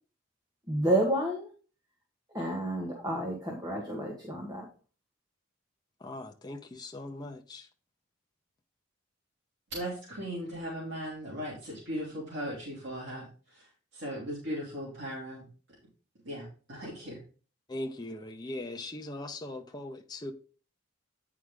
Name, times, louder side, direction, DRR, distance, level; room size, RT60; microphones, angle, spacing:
voice 1, 0.7-1.5 2.3-4.7, right 1 dB, 20° right, 1.5 m, -30 dB
voice 2, 6.0-7.7 17.7-20.3, left 1 dB, 20° left, 0.6 m, -40 dB
voice 3, 9.7-15.5 16.2-17.2, equal, 70° right, 2.8 m, -38 dB
9.1 x 4.8 x 3.8 m
head